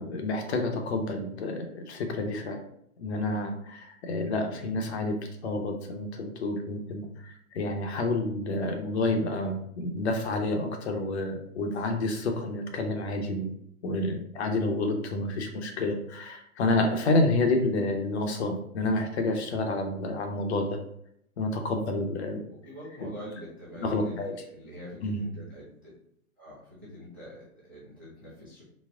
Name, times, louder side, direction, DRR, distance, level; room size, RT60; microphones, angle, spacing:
voice 1, 0.0-2.6 3.0-5.2 5.4-13.5 13.8-20.7 21.4-22.4 23.8-24.3 25.0-25.2, left 2 dB, 50° left, 4 dB, 0.7 m, -29 dB
voice 2, 22.6-25.9 26.4-28.6, equal, 15° right, -10 dB, 0.3 m, -44 dB
4.1 x 2.0 x 3.4 m, 0.72 s
hypercardioid pair, 150°, 44 cm